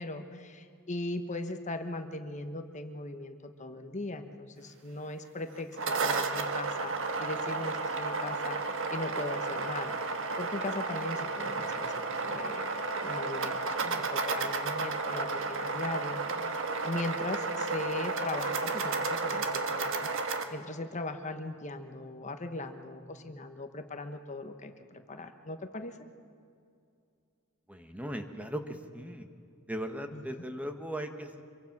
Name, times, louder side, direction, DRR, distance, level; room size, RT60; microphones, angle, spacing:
voice 1, 0.0-6.9 7.2-10.0 10.4-11.9 12.2-16.6 16.8-20.1 20.5-26.0 30.1-30.4, left 2 dB, 35° left, 7 dB, 1.2 m, -39 dB
sound 1, 5.6-20.4, right 3 dB, 60° right, 1.6 m, -32 dB
voice 2, 27.7-29.3 29.7-31.4, equal, 5° right, 6 dB, 1.3 m, -38 dB
26.0 x 23.5 x 6.0 m, 2.4 s
head